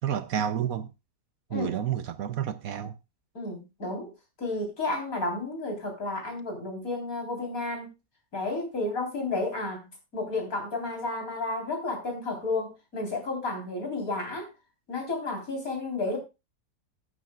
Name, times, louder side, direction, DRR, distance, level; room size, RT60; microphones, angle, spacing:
voice 1, 0.0-0.9 1.5-2.9, right 9 dB, 65° right, 1.1 m, -30 dB
voice 2, 3.3-4.1 4.4-7.9 8.3-14.5 14.9-16.2, left 2 dB, 55° left, 4.3 m, -32 dB
16.0 x 9.0 x 2.3 m
omnidirectional pair, 1.7 m